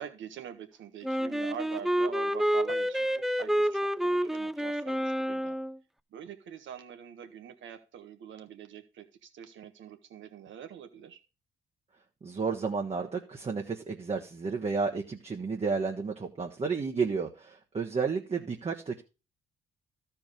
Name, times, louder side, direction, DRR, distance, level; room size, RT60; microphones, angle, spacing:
voice 1, 0.0-5.6 6.1-11.2, right 9 dB, 75° right, 7 dB, 1.5 m, -44 dB
Wind instrument woodwind instrument, 1.0-5.8, equal, ahead, 0.4 m, -29 dB
voice 2, 12.2-19.0, right 5 dB, 30° right, 2 dB, 1.2 m, -32 dB
13.0 x 4.7 x 5.2 m, 0.31 s
cardioid pair, 90°, 20 cm